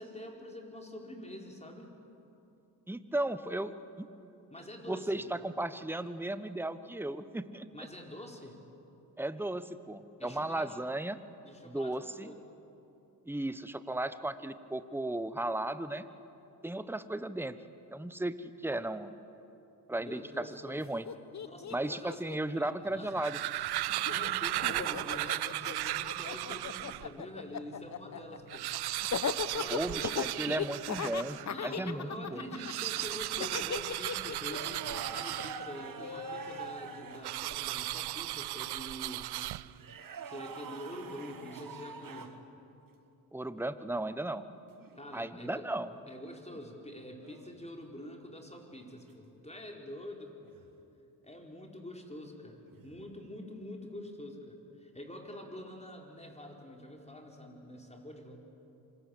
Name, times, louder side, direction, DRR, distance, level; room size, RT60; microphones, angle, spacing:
voice 1, 0.0-1.9 4.5-5.2 7.7-8.6 10.2-10.8 11.4-12.4 20.0-20.9 21.4-22.2 22.5-23.1 23.8-28.7 29.5-30.1 31.5-39.3 40.2-42.3 44.9-45.7 46.1-50.5 51.2-58.4, left 1 dB, 15° left, 1 dB, 4.7 m, -46 dB
voice 2, 2.9-4.1 4.9-7.9 9.2-11.2 11.7-12.3 13.3-16.1 16.6-17.6 17.9-19.1 19.9-21.1 21.7-23.4 29.7-32.5 43.3-44.4 45.1-45.9, right 1 dB, 5° right, 12 dB, 1.2 m, -35 dB
Laughter, 20.8-20.9 21.0-23.4 23.7-36.7, left 7 dB, 40° left, 1.1 m, -38 dB
sound 1, 23.0-27.1 27.7-27.8 28.0-28.1 28.4-31.5 32.5-35.9 37.2-39.9, right 16 dB, 65° right, 0.6 m, -36 dB
sound 2, 34.5-37.6 39.7-42.4 44.8-45.0 47.2-47.6 50.5-50.7 52.7-53.0, right 6 dB, 50° right, 1.8 m, -45 dB
26.0 x 19.5 x 8.6 m, 2.9 s
supercardioid pair, 55°, 42 cm